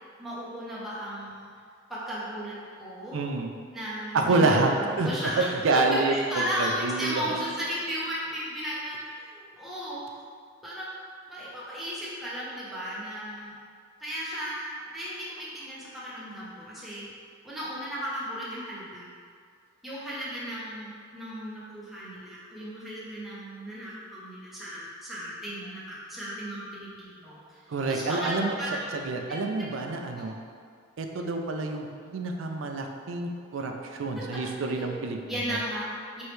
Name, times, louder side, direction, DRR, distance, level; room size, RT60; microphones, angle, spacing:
voice 1, 0.2-1.5 1.9-3.2 3.7-5.5 5.7-10.0 10.6-11.0 11.3-13.5 14.0-17.1 17.4-19.1 19.8-27.6 27.9-29.8 30.2-30.3 34.1-34.3 34.7-34.9 35.3-36.2, equal, ahead, -9 dB, 0.8 m, -35 dB
voice 2, 3.1-3.5 4.1-4.7 5.0-5.1 5.4-7.4 27.7-28.5 28.9-30.3 31.0-35.2 35.5-35.6, right 3 dB, 75° right, 3 dB, 0.4 m, -27 dB
4.5 x 3.1 x 3.2 m, 2.2 s
head